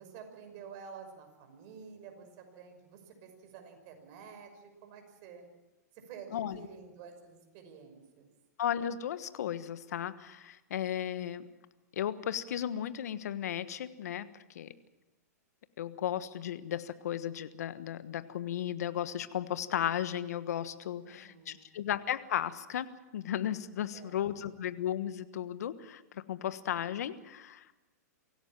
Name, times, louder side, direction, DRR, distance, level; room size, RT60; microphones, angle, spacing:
voice 1, 0.0-5.4 5.9-8.3 21.0-21.7 23.9-24.3, right 6 dB, 45° right, 5 dB, 5.8 m, -50 dB
voice 2, 8.6-11.4 12.0-14.3 14.5-14.7 15.8-27.6, left 10 dB, 70° left, 13 dB, 1.4 m, -35 dB
25.0 x 17.0 x 7.4 m, 1.1 s
hypercardioid pair, 115°, 9 cm